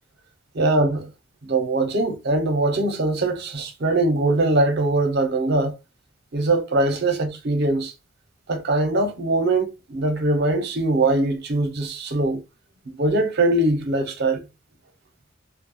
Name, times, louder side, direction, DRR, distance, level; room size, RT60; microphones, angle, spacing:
voice 1, 0.5-1.1 1.4-5.7 6.3-7.9 8.5-12.4 12.9-14.4, right 2 dB, 55° right, 0.6 m, -22 dB
2.2 x 2.0 x 3.1 m
head